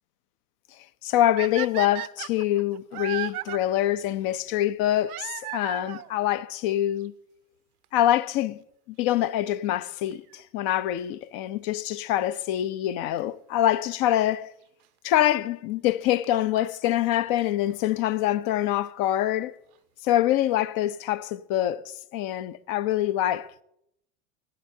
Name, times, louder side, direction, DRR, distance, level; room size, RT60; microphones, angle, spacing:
voice 1, 1.0-7.1 7.9-8.6 8.9-14.5 15.0-19.5 20.0-23.6, left 13 dB, 50° left, 0.7 m, -25 dB
sound 1, 1.4-3.6 5.1-6.1 7.0-7.1 7.8-7.9 8.1-8.2 10.1-10.4 13.2-13.3 14.3-14.4 15.9-16.0 16.2-16.3 16.6-16.7 16.8-16.9 17.1-17.2 17.4-17.5 17.7-17.8, right 17 dB, 70° right, 0.6 m, -35 dB
17.5 x 10.5 x 2.8 m
hypercardioid pair, 80°, 45 cm